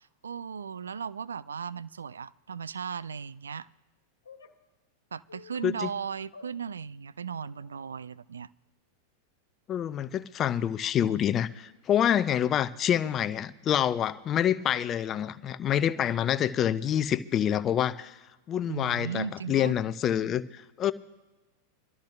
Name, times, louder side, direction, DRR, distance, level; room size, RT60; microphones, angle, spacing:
voice 1, 0.0-3.7 5.1-8.5 18.7-19.8, right 6 dB, 70° right, 20 dB, 0.4 m, -36 dB
sound 1, 4.2-4.5 5.3-5.8 6.3-6.5 7.4-7.8, left 5 dB, 70° left, 1.5 m, -50 dB
voice 2, 9.7-18.2 18.5-20.9, left 10 dB, 30° left, 14 dB, 0.6 m, -27 dB
26.5 x 13.0 x 2.5 m, 1.1 s
figure-of-eight pair, 90°, 0 cm